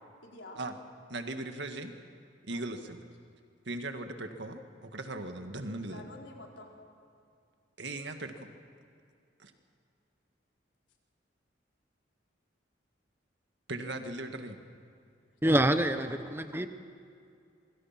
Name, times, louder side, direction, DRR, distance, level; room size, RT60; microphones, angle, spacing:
voice 1, 0.2-0.6 2.5-2.6 5.9-7.0 15.1-15.6 15.9-16.2, left 2 dB, 75° left, -1 dB, 4.4 m, -50 dB
voice 2, 1.1-1.9 2.5-3.0 3.7-6.0 7.8-8.5 9.4-9.5 13.7-14.6, right 2 dB, 65° right, 6 dB, 1.9 m, -38 dB
voice 3, 15.4-16.7, right 1 dB, 10° right, 8 dB, 1.1 m, -26 dB
26.5 x 24.5 x 6.0 m, 2.4 s
head